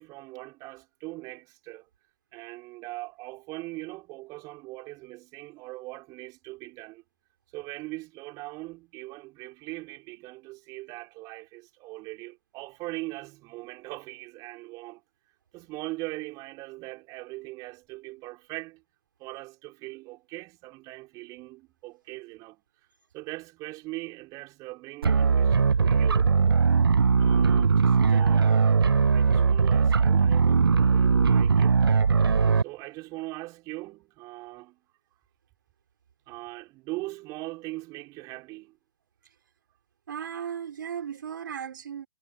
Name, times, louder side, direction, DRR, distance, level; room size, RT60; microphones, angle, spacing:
voice 1, 0.0-1.9 2.3-7.0 7.5-15.0 15.5-18.8 19.2-22.6 23.1-26.3 27.2-28.8 29.1-31.9 32.6-34.8 36.3-38.8, right 21 dB, 30° right, 5.3 m, -40 dB
sound 1, 25.0-32.6, right 5 dB, 75° right, 0.6 m, -20 dB
voice 2, 40.1-42.1, right 8 dB, 60° right, 4.0 m, -36 dB
figure-of-eight pair, 115°, 12 cm